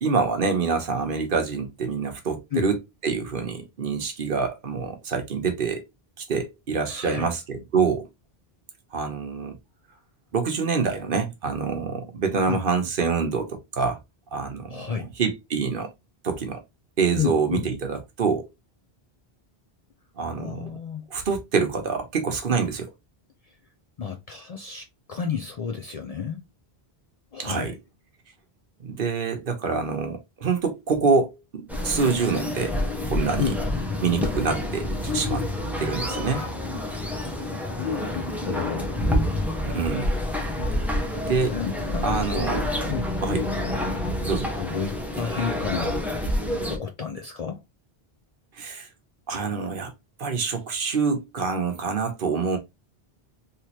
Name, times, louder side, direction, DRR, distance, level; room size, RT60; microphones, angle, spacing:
voice 1, 0.0-5.8 6.2-8.1 8.9-9.6 10.3-14.0 14.3-15.9 16.2-16.6 17.0-18.5 20.2-20.8 21.1-22.9 27.4-27.8 28.8-32.8 33.0-33.6 34.0-35.4 35.8-36.4 39.6-40.1 41.1-41.6 42.0-42.7 43.2-43.4 44.3-44.5 48.6-48.9 49.3-49.9 50.2-52.6, right 5 dB, 60° right, 1.0 m, -26 dB
voice 2, 6.9-7.3 12.5-12.6 14.7-15.1 17.2-17.7 20.4-21.1 24.0-26.4 27.3-27.7 33.4-33.6 36.3-36.5 36.9-37.1 37.8-39.0 41.4-42.5 42.8-43.1 44.6-46.0 46.7-47.6, left 7 dB, 50° left, 0.5 m, -31 dB
sound 1, 31.7-46.8, left 1 dB, ahead, 0.7 m, -28 dB
3.3 x 3.0 x 2.9 m
omnidirectional pair, 1.0 m